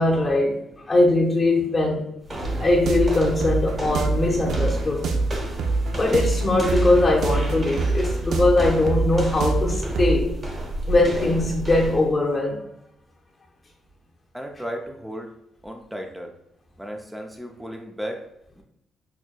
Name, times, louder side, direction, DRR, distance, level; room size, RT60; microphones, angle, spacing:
voice 1, 0.0-2.0 2.6-5.1 6.0-10.3 10.9-12.6, left 2 dB, 35° left, 0.9 m, -21 dB
sound 1, 2.2-12.1, right 1 dB, 35° right, 1.1 m, -33 dB
sound 2, 2.4-10.2, right 3 dB, 70° right, 0.5 m, -25 dB
voice 2, 14.3-15.3 15.6-16.3 16.8-18.2 18.6-18.7, equal, 5° right, 0.5 m, -34 dB
6.0 x 2.2 x 2.3 m
cardioid pair, 85°, 0 cm